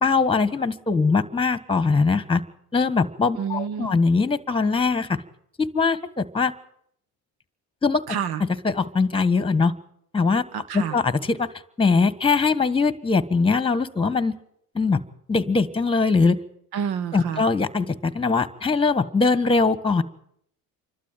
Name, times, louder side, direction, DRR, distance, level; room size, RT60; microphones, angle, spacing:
voice 1, 0.0-2.4 2.7-5.2 5.6-6.5 7.8-8.0 8.6-9.7 10.1-10.5 10.7-11.5 11.8-14.3 14.7-15.0 15.3-16.4 17.1-20.0, left 4 dB, 15° left, 16 dB, 1.4 m, -21 dB
voice 2, 3.3-3.9 8.1-8.4 10.5-11.0 16.7-17.4, right 8 dB, 65° right, 15 dB, 1.6 m, -29 dB
27.5 x 12.5 x 9.1 m, 0.70 s
supercardioid pair, 80°, 41 cm